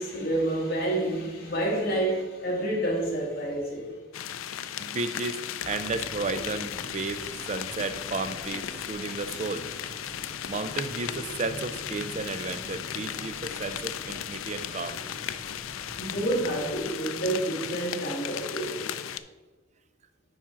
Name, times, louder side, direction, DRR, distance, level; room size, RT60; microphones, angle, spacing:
voice 1, 0.0-4.0 16.0-18.9, right 1 dB, 50° left, 2.0 m, -29 dB
sound 1, 4.1-19.2, left 10 dB, 85° left, 0.4 m, -36 dB
voice 2, 4.8-9.6 10.5-15.0, right 3 dB, 35° right, 0.4 m, -33 dB
sound 2, 5.6-16.8, equal, 10° left, 2.3 m, -45 dB
10.5 x 4.3 x 3.7 m
head